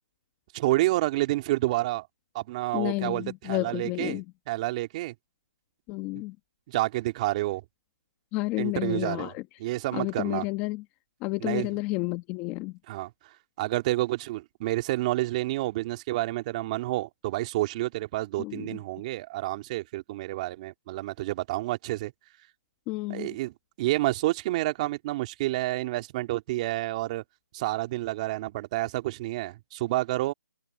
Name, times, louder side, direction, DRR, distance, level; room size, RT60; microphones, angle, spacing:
voice 1, 0.5-2.1 2.3-5.1 6.7-7.6 8.6-9.3 9.6-10.5 11.4-11.8 12.9-13.1 13.6-22.1 23.1-27.2 27.5-30.3, right 18 dB, 20° right, 2.6 m, -29 dB
voice 2, 2.7-4.2 5.9-6.3 8.3-9.4 9.9-10.8 11.2-12.7 18.4-18.8 22.9-23.3, left 22 dB, 15° left, 1.2 m, -31 dB
figure-of-eight pair, 160°, 10 cm